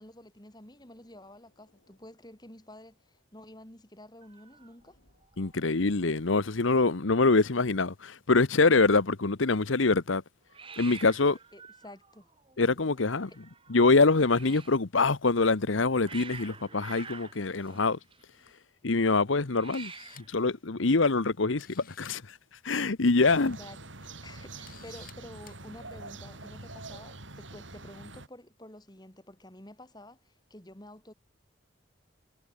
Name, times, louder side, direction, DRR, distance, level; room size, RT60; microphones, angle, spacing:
voice 1, 0.0-5.0 11.3-12.3 13.3-13.4 23.3-23.8 24.2-31.1, left 1 dB, 20° left, 2.7 m, -50 dB
Hiss, 4.2-5.6 5.8-6.3 6.5-6.6 6.8-7.5 10.5-14.8 15.6-18.5 19.4-20.4, right 5 dB, 25° right, 2.2 m, -48 dB
voice 2, 5.4-10.2 10.8-11.4 12.6-13.3 13.7-18.0 18.8-19.9 20.3-22.4 22.6-23.6, left 3 dB, 80° left, 1.0 m, -24 dB
Camera, 19.1-19.2 19.6-20.4 21.2-21.3 21.6-22.2 23.3-23.5 24.0-24.1 24.7-25.1 25.4-25.6, left 10 dB, 45° left, 3.3 m, -53 dB
sound 1, 23.2-28.3, right 3 dB, 75° right, 7.1 m, -45 dB
head